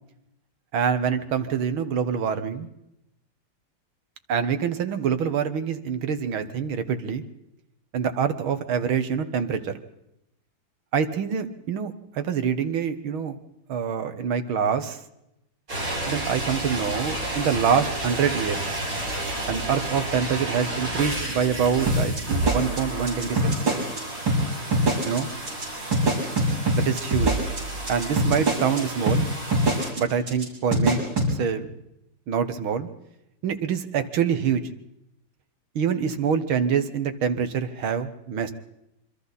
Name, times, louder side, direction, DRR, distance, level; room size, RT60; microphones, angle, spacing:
voice 1, 0.7-2.7 4.3-7.2 7.9-9.7 10.9-13.4 13.7-15.0 16.1-18.6 19.5-23.8 25.1-25.3 26.7-27.3 27.9-29.2 30.0-31.0 31.3-31.7 32.3-32.9 33.4-34.7 35.8-38.5, right 7 dB, 90° right, 9 dB, 2.2 m, -25 dB
sound 1, 15.7-29.9, right 1 dB, 40° right, 6.7 m, -32 dB
sound 2, 21.9-24.0 24.3-24.4 24.7-25.2 25.5-25.7 25.9-28.8 29.1-29.2 29.5-30.0 30.3-30.4 30.7-31.3, right 2 dB, 65° right, 6.4 m, -23 dB
27.0 x 24.5 x 4.2 m, 0.85 s
omnidirectional pair, 2.2 m